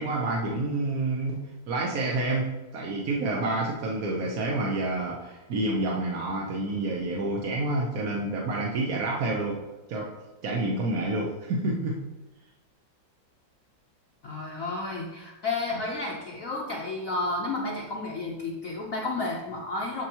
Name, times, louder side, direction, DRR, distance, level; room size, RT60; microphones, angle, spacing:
voice 1, 0.0-1.4 1.7-9.6 9.9-10.1 10.4-12.0, right 2 dB, 55° right, -2 dB, 1.1 m, -28 dB
voice 2, 14.2-20.0, left 2 dB, 55° left, -2 dB, 1.1 m, -31 dB
11.5 x 4.5 x 2.9 m, 1.1 s
omnidirectional pair, 2.1 m